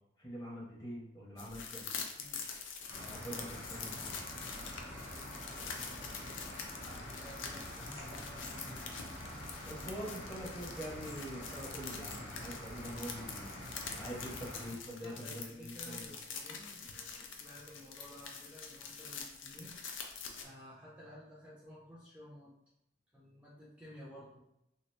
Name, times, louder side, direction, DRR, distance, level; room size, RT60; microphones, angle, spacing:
voice 1, 0.2-1.8 3.0-4.2 6.9-7.1 9.7-13.5 13.9-16.1, equal, 20° left, -4 dB, 0.8 m, -45 dB
sound 1, 1.4-20.4, left 6 dB, 85° left, 0.4 m, -46 dB
sound 2, 2.9-14.7, equal, 45° left, 1.4 m, -46 dB
voice 2, 5.4-6.1 7.2-9.0 15.0-19.8 20.4-22.6 23.1-24.4, equal, 5° right, -7 dB, 0.4 m, -54 dB
2.8 x 2.4 x 3.2 m, 0.85 s
head